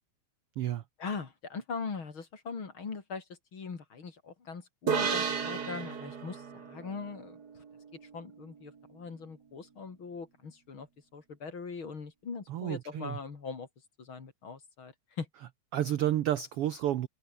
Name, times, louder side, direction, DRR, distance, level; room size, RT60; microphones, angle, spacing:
voice 1, 1.0-3.2 3.5-7.4 8.1-10.9 11.1-13.7 14.0-15.3, left 5 dB, 40° left, 3.4 m, -41 dB
sound 1, 4.9-8.3, right 6 dB, 35° right, 1.8 m, -34 dB
voice 2, 12.5-13.2 15.7-17.1, right 12 dB, 75° right, 1.3 m, -30 dB
omnidirectional pair, 3.8 m